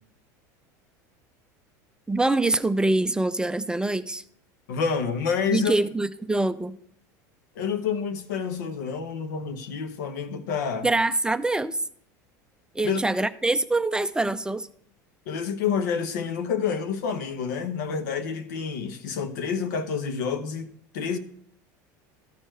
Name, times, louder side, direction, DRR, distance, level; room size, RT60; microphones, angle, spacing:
voice 1, 2.1-4.2 5.5-6.8 10.8-11.8 12.7-14.7, right 2 dB, 10° right, 0.4 m, -24 dB
voice 2, 4.7-5.8 7.6-10.9 12.8-13.0 15.3-21.2, left 6 dB, 85° left, 0.9 m, -28 dB
13.5 x 4.5 x 4.4 m
supercardioid pair, 95°, 9 cm